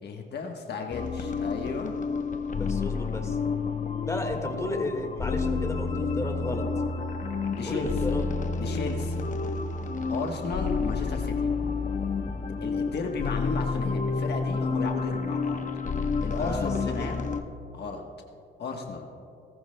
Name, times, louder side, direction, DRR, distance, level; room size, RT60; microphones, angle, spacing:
voice 1, 0.0-1.9 7.6-7.9 8.6-9.3 10.1-11.5 12.6-15.6 16.2-17.3 17.7-18.0 18.6-19.1, left 4 dB, 55° left, 2 dB, 1.2 m, -34 dB
sound 1, 0.9-17.4, left 4 dB, 40° left, 0.9 m, -30 dB
voice 2, 2.6-3.4 4.1-6.6 7.6-8.2 12.3-12.4 16.4-16.7 17.0-17.1, left 2 dB, 15° left, 3 dB, 1.7 m, -33 dB
19.0 x 14.0 x 2.2 m, 2.7 s
cardioid pair, 90°, 20 cm